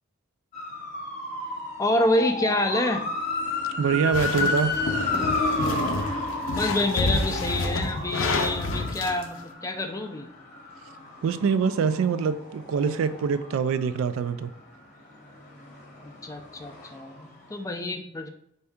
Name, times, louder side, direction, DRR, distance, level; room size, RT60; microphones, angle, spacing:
sound 1, 0.5-14.3 14.7-17.2 17.5-17.6, left 2 dB, 35° left, 0.8 m, -32 dB
voice 1, 1.8-3.0 6.5-9.4 9.6-10.3 16.0-18.3, left 1 dB, 15° left, 6 dB, 0.3 m, -27 dB
voice 2, 3.8-4.8 11.2-14.5, right 6 dB, 80° right, 12 dB, 0.3 m, -24 dB
sound 2, 4.1-9.2, left 2 dB, 70° left, 0.5 m, -29 dB
4.5 x 2.6 x 3.4 m, 0.73 s
head